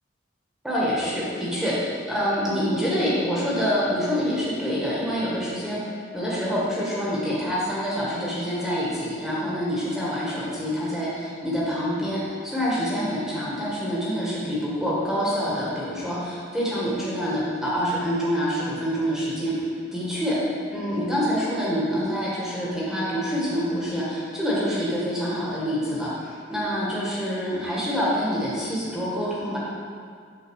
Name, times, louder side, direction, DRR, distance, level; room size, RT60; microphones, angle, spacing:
voice 1, 0.6-5.8 6.1-19.6 19.9-20.4 20.7-29.6, equal, 5° right, -8 dB, 1.8 m, -26 dB
8.3 x 4.4 x 6.5 m, 2.1 s
head